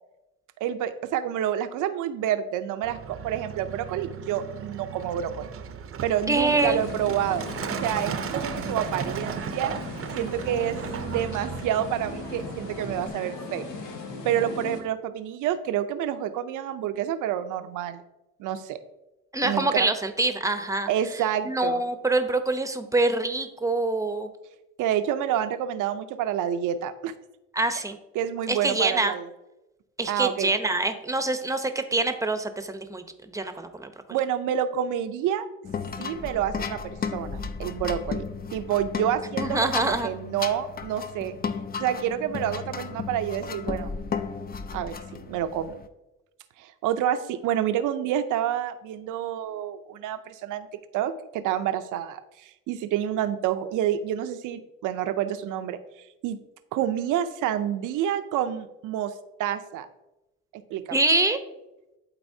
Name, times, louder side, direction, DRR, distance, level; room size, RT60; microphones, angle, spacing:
voice 1, 0.6-5.5 6.0-9.7 10.1-10.8 11.1-13.7 14.2-18.0 18.4-18.8 19.4-19.8 20.9-21.8 24.8-27.1 28.1-29.3 30.1-30.5 34.1-35.5 36.0-38.2 38.5-41.3 41.8-43.9 44.7-45.8 46.6-50.7 50.9-55.8 56.2-56.4 56.7-59.1 59.4-59.9 60.5-61.0, right 10 dB, 90° right, 11 dB, 0.6 m, -28 dB
Truck, 2.8-13.1, right 7 dB, 45° right, 0.6 m, -36 dB
voice 2, 6.3-6.8 19.3-20.9 21.4-24.3 27.5-28.0 28.5-29.1 30.0-33.9 39.4-40.1 60.9-61.4, right 2 dB, 10° right, 8 dB, 0.7 m, -25 dB
sound 1, 6.4-14.8, left 3 dB, 90° left, 1.3 m, -38 dB
sound 2, 35.6-45.9, left 5 dB, 30° left, 0.5 m, -34 dB
12.0 x 4.2 x 2.7 m, 0.98 s
cardioid pair, 90°, 30 cm